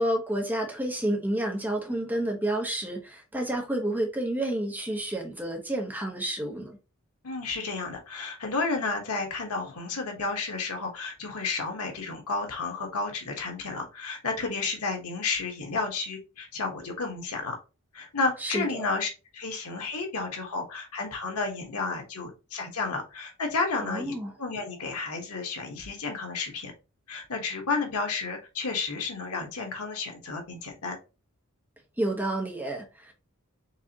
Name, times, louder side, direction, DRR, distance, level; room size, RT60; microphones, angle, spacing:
voice 1, 0.0-6.8 18.4-18.8 23.8-24.3 32.0-33.1, right 1 dB, 10° right, 1.1 m, -30 dB
voice 2, 7.2-17.6 17.9-26.7 27.1-31.0, left 4 dB, 85° left, 1.3 m, -32 dB
4.7 x 3.4 x 2.9 m
head